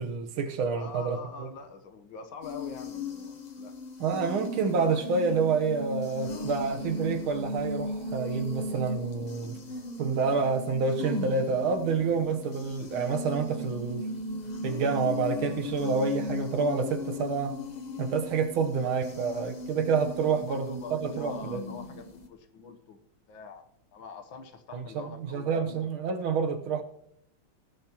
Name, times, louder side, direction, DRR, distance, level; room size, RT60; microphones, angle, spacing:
voice 1, 0.0-1.5 4.0-9.6 10.0-14.1 14.6-17.6 18.0-21.6 24.7-26.8, right 5 dB, 80° right, 2.0 m, -28 dB
voice 2, 0.7-3.7 20.2-23.0 23.3-23.6 23.9-25.9, left 4 dB, 70° left, 1.9 m, -44 dB
sound 1, 2.4-22.3, left 1 dB, 35° left, 0.6 m, -37 dB
18.5 x 12.0 x 3.0 m
omnidirectional pair, 2.2 m